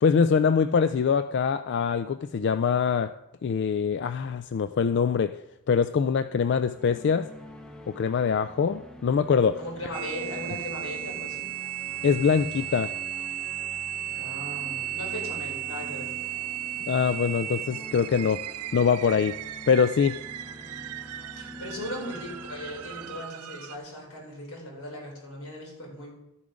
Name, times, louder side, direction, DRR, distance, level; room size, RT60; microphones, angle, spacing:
voice 1, 0.0-3.1 3.4-5.3 5.7-7.3 7.9-9.6 12.0-12.9 16.9-18.4 18.7-19.3 19.7-20.2, left 6 dB, 50° left, 11 dB, 0.3 m, -23 dB
sound 1, 6.2-23.2, left 1 dB, 5° left, 0.7 m, -46 dB
voice 2, 9.6-11.5 14.2-16.1 21.3-26.1, left 1 dB, 85° left, -1 dB, 4.1 m, -38 dB
sound 2, 9.9-23.8, right 13 dB, 85° right, 0.4 m, -35 dB
13.0 x 7.1 x 5.1 m, 0.89 s
head